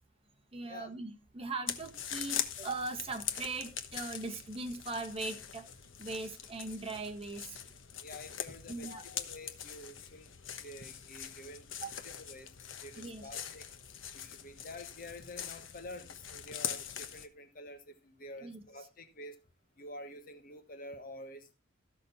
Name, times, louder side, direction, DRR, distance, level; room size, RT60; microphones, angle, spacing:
voice 1, 0.5-5.7 6.0-7.6 8.7-9.0 11.8-12.0 12.9-13.4 18.4-18.6, right 3 dB, 30° right, 1.5 m, -40 dB
sound 1, 1.7-17.3, left 9 dB, 70° left, 1.2 m, -42 dB
voice 2, 8.0-10.3 10.6-11.7 12.0-12.5 12.8-13.6 14.1-19.4 19.8-21.5, left 1 dB, 45° left, 1.3 m, -48 dB
14.0 x 6.4 x 4.2 m
head